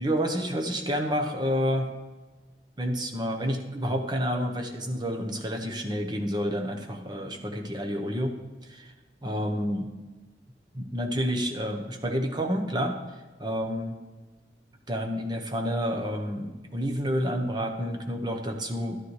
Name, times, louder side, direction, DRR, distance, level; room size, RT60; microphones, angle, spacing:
voice 1, 0.0-1.9 2.8-8.3 8.7-8.9 9.2-9.9 10.7-13.0 13.4-13.9 14.9-19.0, equal, 25° right, 4 dB, 0.9 m, -29 dB
11.5 x 9.8 x 3.2 m, 1.3 s
head